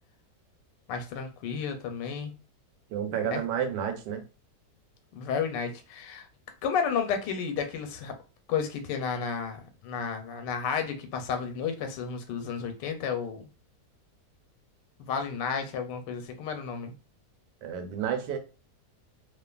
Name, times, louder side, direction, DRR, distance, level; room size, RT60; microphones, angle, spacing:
voice 1, 0.9-2.3 3.3-3.4 5.1-6.2 6.6-8.1 8.5-13.5 15.0-16.9, left 6 dB, 90° left, 1.3 m, -32 dB
voice 2, 2.9-4.2 17.6-18.4, right 8 dB, 80° right, 1.2 m, -30 dB
2.7 x 2.4 x 2.2 m
omnidirectional pair, 1.9 m